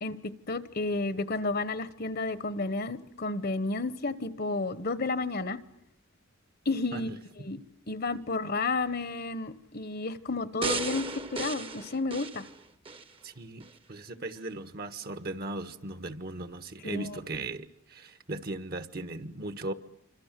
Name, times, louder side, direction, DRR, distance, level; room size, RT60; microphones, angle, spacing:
voice 1, 0.0-5.6 6.6-7.1 7.4-7.6 7.9-12.4 16.8-17.1, left 3 dB, 50° left, 1.2 m, -31 dB
sound 1, 10.6-13.1 13.6-13.7, right 4 dB, 25° right, 1.1 m, -35 dB
voice 2, 13.2-19.7, right 2 dB, 50° right, 1.4 m, -38 dB
27.0 x 26.0 x 7.6 m
head